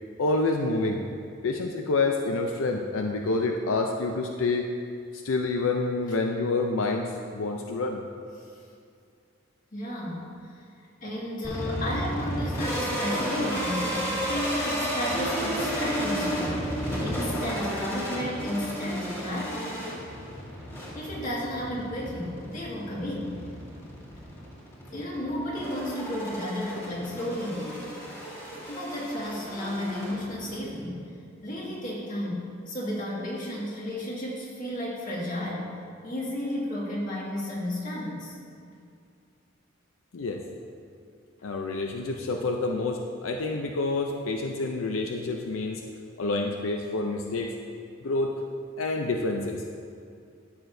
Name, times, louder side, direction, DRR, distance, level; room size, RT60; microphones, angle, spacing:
voice 1, 0.2-1.0 1.4-4.7 5.1-8.0 40.1-40.4 41.4-45.9 46.2-47.5 48.0-48.4 48.8-49.8, left 3 dB, 85° left, 3 dB, 0.5 m, -28 dB
voice 2, 9.7-10.6 11.0-19.8 20.9-23.4 24.9-27.9 28.7-35.7 36.0-38.4, left 1 dB, 40° left, -5 dB, 1.9 m, -33 dB
sound 1, 11.4-30.6, equal, 15° left, 2.1 m, -33 dB
13.5 x 6.7 x 2.6 m, 2.3 s
head